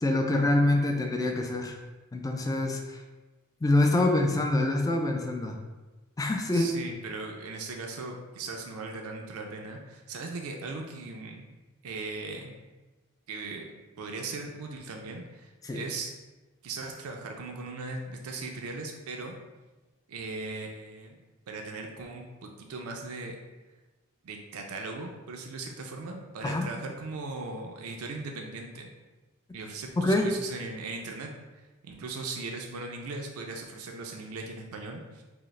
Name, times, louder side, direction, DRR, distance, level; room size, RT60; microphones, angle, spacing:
voice 1, 0.0-1.8 2.1-2.8 3.6-5.6 6.2-6.8 15.6-15.8 26.4-26.7 30.0-30.3, left 2 dB, 15° left, 3 dB, 0.3 m, -25 dB
voice 2, 6.5-11.4 11.8-12.5 13.3-16.1 16.6-19.4 20.1-21.2 21.5-23.4 24.2-28.9 29.5-31.3 31.8-35.2, right 3 dB, 85° right, 2 dB, 0.5 m, -38 dB
4.8 x 2.0 x 3.1 m, 1.1 s
head